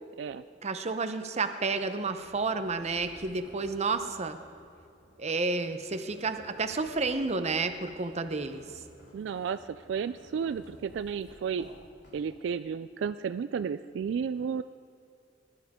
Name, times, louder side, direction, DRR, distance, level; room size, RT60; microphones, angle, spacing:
voice 1, 0.6-4.4 5.2-8.6, right 3 dB, 40° right, 9 dB, 0.8 m, -31 dB
sound 1, 1.7-12.7, equal, 70° left, 3.4 m, -55 dB
voice 2, 9.1-9.6 9.9-11.6 12.1-14.6, right 6 dB, 75° right, 12 dB, 0.3 m, -32 dB
20.0 x 11.5 x 3.6 m, 2.6 s
head